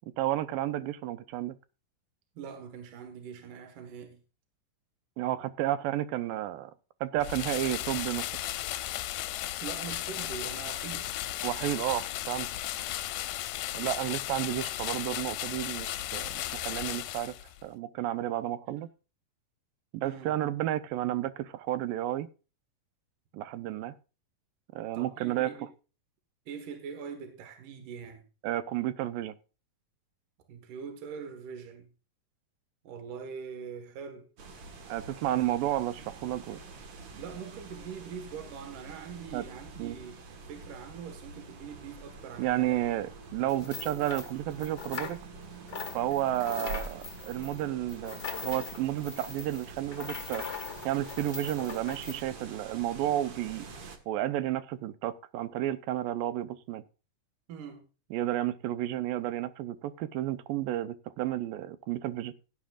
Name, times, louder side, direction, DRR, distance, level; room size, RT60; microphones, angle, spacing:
voice 1, 0.2-1.6 5.2-6.7 7.0-8.2 11.4-12.5 13.7-17.3 17.6-18.9 19.9-22.3 23.3-23.9 24.7-25.5 28.4-29.4 34.9-36.6 39.3-39.4 39.8-40.0 42.4-45.2 45.9-50.4 50.9-53.7 54.1-56.8 58.1-62.3, right 13 dB, 85° right, 2.5 m, -32 dB
voice 2, 2.4-4.2 9.6-11.1 20.0-20.3 24.9-25.7 26.5-28.2 30.5-31.9 32.8-34.3 37.2-42.8 43.4-43.7 57.5-57.9, right 7 dB, 70° right, 3.0 m, -43 dB
sound 1, 7.2-17.6, left 14 dB, 75° left, 1.9 m, -35 dB
sound 2, 34.4-54.0, right 4 dB, 50° right, 2.1 m, -46 dB
sound 3, 43.5-45.4 45.7-52.2, left 5 dB, 50° left, 0.8 m, -41 dB
16.5 x 9.5 x 2.4 m
omnidirectional pair, 3.9 m